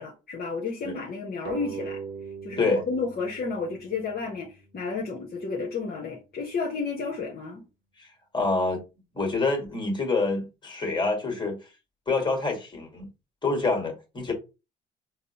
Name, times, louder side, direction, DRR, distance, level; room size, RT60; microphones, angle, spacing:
voice 1, 0.0-2.0 2.4-7.6, left 4 dB, 50° left, 0.9 m, -31 dB
sound 1, 1.4-4.6, right 6 dB, 60° right, 0.7 m, -40 dB
voice 2, 8.3-8.8 9.1-11.6 12.1-13.1 13.4-14.3, left 3 dB, 20° left, 1.5 m, -27 dB
4.0 x 2.0 x 2.8 m
supercardioid pair, 70°, 20 cm